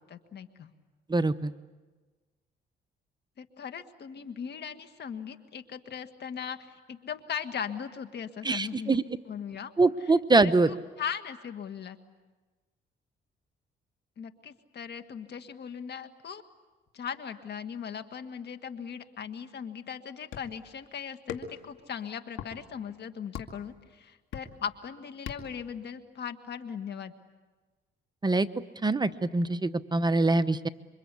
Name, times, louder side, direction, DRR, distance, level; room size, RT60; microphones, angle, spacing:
voice 1, 0.1-0.7 3.4-9.0 9.3-9.7 10.0-12.0 14.2-16.4 16.9-27.1, left 7 dB, 60° left, 9 dB, 1.8 m, -39 dB
voice 2, 1.1-1.5 8.4-9.0 9.8-10.7 28.2-28.5 28.8-30.7, right 3 dB, 20° right, 11 dB, 0.9 m, -24 dB
sound 1, 20.3-20.6 21.3-21.7 22.3-22.5 23.3-23.7 24.3-24.7 25.3-25.7, left 7 dB, 80° left, 2.3 m, -39 dB
28.0 x 24.5 x 8.4 m, 1.3 s
cardioid pair, 90°, 20 cm